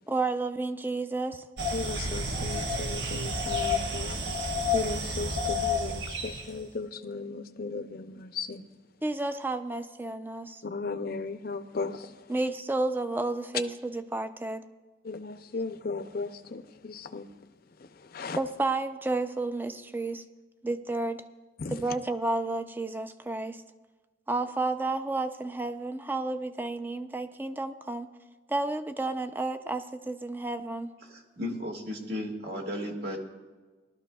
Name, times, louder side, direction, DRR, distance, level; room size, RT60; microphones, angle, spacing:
voice 1, 0.1-1.4 9.0-10.6 12.3-14.6 18.4-20.2 20.6-21.2 21.7-23.6 24.3-28.1 28.5-30.9, right 2 dB, 10° right, 0.5 m, -31 dB
sound 1, 1.6-6.5, left 2 dB, 80° right, 1.2 m, -30 dB
voice 2, 1.7-4.2 4.7-8.7 10.6-12.3 15.0-17.3 17.8-18.4 21.6-22.0, left 4 dB, 55° left, 0.6 m, -36 dB
voice 3, 31.1-33.2, left 1 dB, 60° right, 1.9 m, -35 dB
19.0 x 12.5 x 2.3 m
head